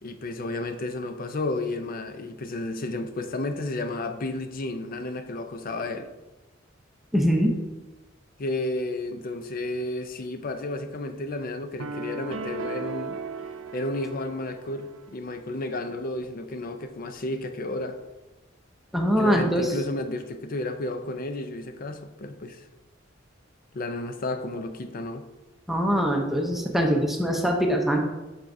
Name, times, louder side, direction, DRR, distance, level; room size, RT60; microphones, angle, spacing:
voice 1, 0.0-6.1 8.4-13.2 13.7-18.0 19.2-22.6 23.7-25.2, left 2 dB, 45° left, 8 dB, 0.5 m, -32 dB
voice 2, 7.1-7.5 18.9-19.7 25.7-28.0, equal, ahead, 1 dB, 0.7 m, -23 dB
sound 1, 11.8-15.0, right 4 dB, 85° right, 0.4 m, -36 dB
8.0 x 5.9 x 2.6 m, 1.1 s
head